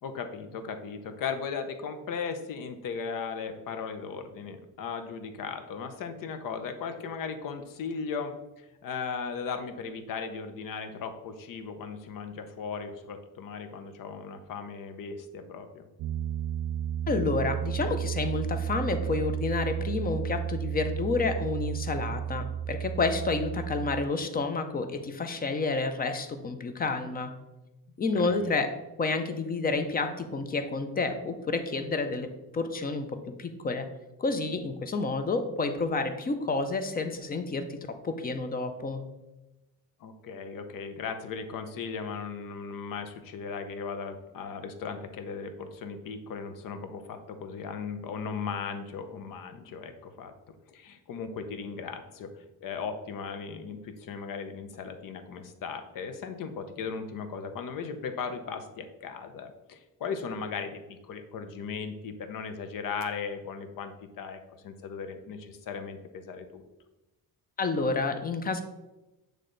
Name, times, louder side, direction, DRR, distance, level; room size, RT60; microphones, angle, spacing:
voice 1, 0.0-15.8 28.1-28.5 40.0-50.3 50.7-66.6, left 5 dB, 65° left, 8 dB, 0.8 m, -37 dB
Piano, 16.0-24.1, right 9 dB, 75° right, 0.5 m, -33 dB
voice 2, 17.1-27.3 28.0-28.7 29.0-32.3 32.5-33.1 33.4-33.9 34.2-37.8 38.0-39.0 67.6-68.6, left 3 dB, 25° left, 8 dB, 0.5 m, -29 dB
8.2 x 3.3 x 3.9 m, 1.0 s
cardioid pair, 160°, 36 cm